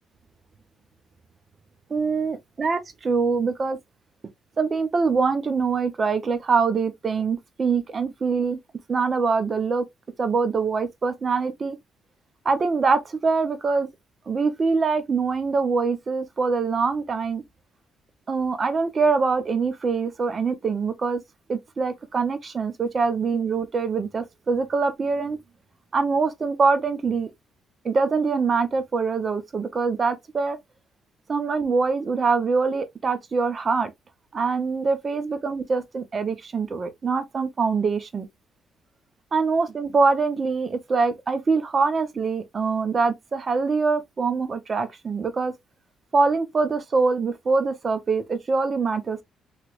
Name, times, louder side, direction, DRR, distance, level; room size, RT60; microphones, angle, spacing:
voice 1, 1.9-3.8 4.6-8.6 8.9-9.9 10.2-11.8 12.4-13.9 14.3-17.4 18.3-21.2 21.5-25.4 25.9-27.3 27.8-30.6 31.3-33.9 34.3-38.3 39.3-45.5 46.1-49.2, right 4 dB, 40° right, 0.7 m, -24 dB
3.1 x 3.0 x 2.4 m
cardioid pair, 90°, 0 cm